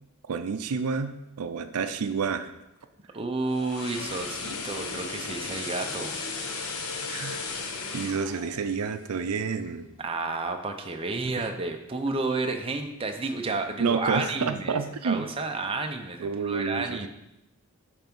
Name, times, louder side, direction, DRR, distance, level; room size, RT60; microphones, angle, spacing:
voice 1, 0.3-2.5 7.1-7.4 7.9-9.9 11.4-11.5 13.8-15.3 16.2-17.1, right 5 dB, 85° right, 10 dB, 0.5 m, -29 dB
voice 2, 3.1-6.2 10.0-14.8 15.0-17.1, right 3 dB, 25° right, 4 dB, 0.6 m, -31 dB
sound 1, 3.3-9.5 9.8-10.0, left 4 dB, 80° left, 0.9 m, -36 dB
9.1 x 3.4 x 5.4 m, 0.90 s
head